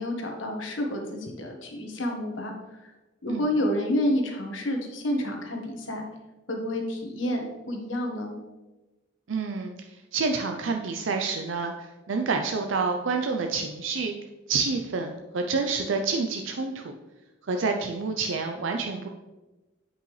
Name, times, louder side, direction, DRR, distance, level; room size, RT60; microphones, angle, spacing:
voice 1, 0.0-2.9 3.2-6.0 6.5-8.3, left 1 dB, 80° left, 2 dB, 1.4 m, -29 dB
voice 2, 9.3-14.1 14.5-16.9 17.4-19.1, right 4 dB, 75° right, 4 dB, 0.5 m, -28 dB
8.6 x 5.4 x 3.2 m, 1.1 s
head